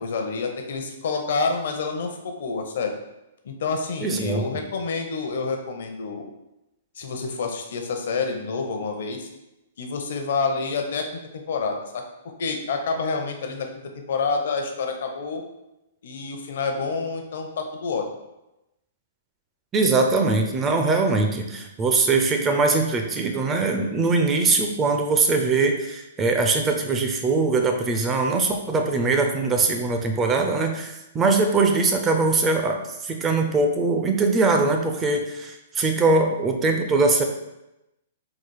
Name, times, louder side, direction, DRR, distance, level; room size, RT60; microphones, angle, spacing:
voice 1, 0.0-2.9 3.4-6.3 6.9-9.3 9.8-12.0 12.4-13.7 14.1-15.4 16.0-18.0, left 4 dB, 60° left, 4 dB, 0.7 m, -28 dB
voice 2, 4.0-4.5 19.7-37.2, right 3 dB, 15° right, 4 dB, 0.4 m, -22 dB
3.9 x 2.4 x 4.6 m, 0.93 s
hypercardioid pair, 160°, 0 cm